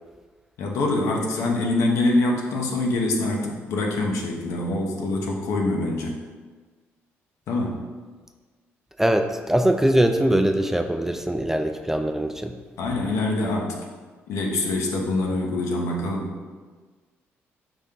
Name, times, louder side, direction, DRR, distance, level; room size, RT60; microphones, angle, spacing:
voice 1, 0.6-6.2 7.5-7.8 12.8-13.8 14.3-16.3, left 2 dB, 80° left, 0 dB, 0.8 m, -24 dB
voice 2, 9.0-12.5, right 1 dB, 10° right, 6 dB, 0.3 m, -22 dB
5.1 x 2.8 x 3.6 m, 1.4 s
cardioid pair, 80°, 5 cm